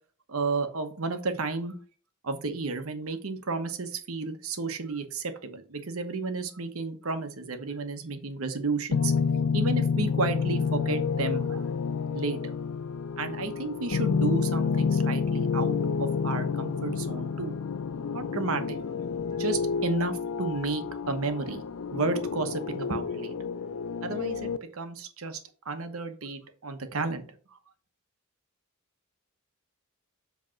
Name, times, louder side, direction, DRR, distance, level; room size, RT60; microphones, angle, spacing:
voice 1, 0.3-1.7 2.2-9.1 9.5-11.7 12.1-12.6 13.2-17.5 18.1-18.8 19.4-21.6 21.9-23.3 24.0-25.4 25.6-27.2, right 3 dB, 75° right, 8 dB, 1.1 m, -32 dB
sound 1, 8.9-24.6, left 5 dB, 75° left, 0.5 m, -29 dB
7.6 x 3.4 x 5.7 m, 0.41 s
head